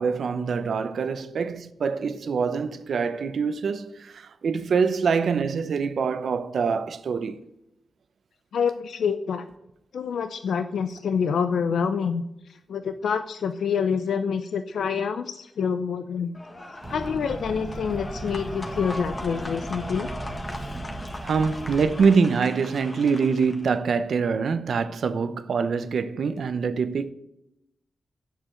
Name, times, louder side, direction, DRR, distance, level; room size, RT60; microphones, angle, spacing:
voice 1, 0.0-7.4 21.2-27.1, right 5 dB, 75° right, 0.8 m, -25 dB
voice 2, 8.5-9.5 9.9-16.4 16.9-20.1, left 6 dB, 90° left, 0.5 m, -27 dB
sound 1, 16.3-23.7, left 1 dB, 25° left, 1.6 m, -39 dB
Fire, 16.8-22.1, right 2 dB, 25° right, 1.4 m, -37 dB
8.0 x 6.6 x 7.5 m
cardioid pair, 85°, 0 cm